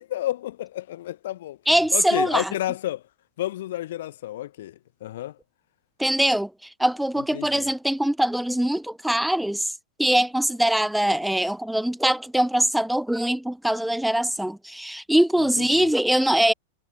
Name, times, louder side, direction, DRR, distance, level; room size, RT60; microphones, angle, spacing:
voice 1, 0.0-3.0 3.4-5.4 7.2-7.7 15.4-15.9, left 13 dB, 60° left, 6.6 m, -31 dB
voice 2, 1.7-2.5 6.0-6.5 6.8-9.7 10.0-16.5, right 1 dB, ahead, 2.9 m, -22 dB
supercardioid pair, 175°, 0 cm